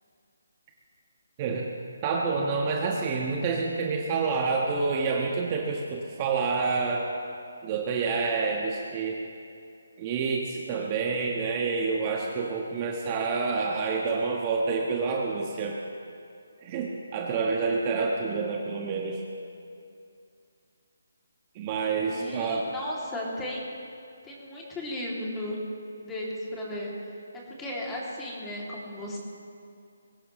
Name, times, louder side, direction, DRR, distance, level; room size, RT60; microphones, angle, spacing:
voice 1, 2.0-7.1 7.6-9.2 10.0-15.8 16.6-19.2 21.5-22.7, right 4 dB, 30° right, -1 dB, 1.5 m, -28 dB
voice 2, 22.0-23.6 24.2-25.6 26.0-26.9 27.5-29.2, left 1 dB, 10° left, -4 dB, 3.0 m, -35 dB
22.5 x 16.0 x 3.3 m, 2.5 s
figure-of-eight pair, 155°, 0 cm